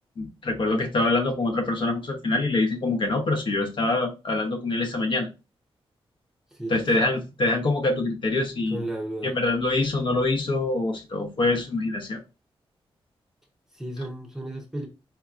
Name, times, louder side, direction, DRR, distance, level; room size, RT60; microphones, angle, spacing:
voice 1, 0.2-5.3 6.7-8.8 9.3-12.2, left 2 dB, 55° left, 0.8 m, -25 dB
voice 2, 6.5-7.1 8.7-9.3 13.7-14.9, right 1 dB, 5° right, 0.6 m, -34 dB
4.4 x 2.8 x 2.4 m
wide cardioid pair, 160°, 10 cm